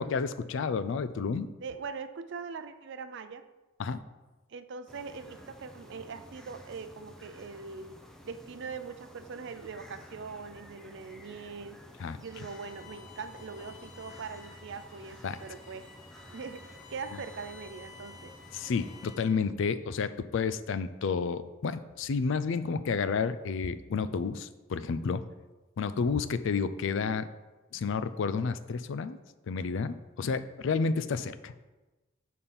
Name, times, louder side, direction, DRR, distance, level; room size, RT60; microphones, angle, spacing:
voice 1, 0.0-1.5 3.8-4.0 12.0-12.2 15.2-15.4 18.5-25.2 25.8-27.3 27.7-29.2 29.5-31.5, left 5 dB, 65° left, 13 dB, 0.4 m, -30 dB
voice 2, 1.6-3.4 4.5-8.0 8.2-11.8 12.2-15.9 16.3-18.3, right 5 dB, 60° right, 11 dB, 0.5 m, -42 dB
sound 1, 4.9-19.1, equal, ahead, 0.5 m, -52 dB
Bowed string instrument, 12.3-19.5, left 5 dB, 40° left, 1.0 m, -53 dB
6.9 x 4.3 x 5.5 m, 1.1 s
head